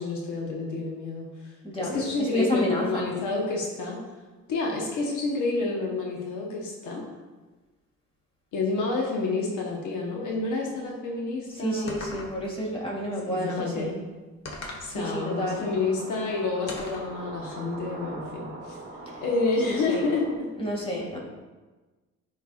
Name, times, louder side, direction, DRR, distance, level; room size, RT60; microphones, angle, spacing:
voice 1, 0.0-1.5 1.8-4.0 4.5-7.0 8.5-12.0 13.3-13.9 14.8-20.5, left 3 dB, 80° left, -1 dB, 1.1 m, -29 dB
voice 2, 1.6-3.1 11.5-14.0 14.6-15.7 19.1-19.2 19.6-20.1 20.6-21.2, equal, 20° left, -2 dB, 2.1 m, -30 dB
sound 1, 11.9-12.6 14.5-14.9 16.7-17.1, left 2 dB, 60° left, 1.4 m, -38 dB
sound 2, 15.0-20.3, right 2 dB, 35° right, 1.1 m, -41 dB
10.5 x 4.6 x 2.4 m, 1.3 s
cardioid pair, 90°, 30 cm